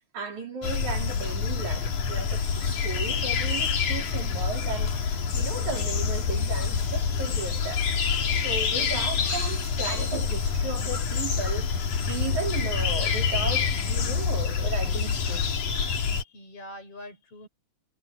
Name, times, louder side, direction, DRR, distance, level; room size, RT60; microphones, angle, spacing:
voice 1, 0.1-7.8 8.4-15.6, right 4 dB, 75° right, 5.0 m, -35 dB
sound 1, 0.6-16.2, left 6 dB, 85° left, 4.1 m, -27 dB
voice 2, 16.0-17.5, left 1 dB, 50° left, 8.7 m, -44 dB
omnidirectional pair, 3.4 m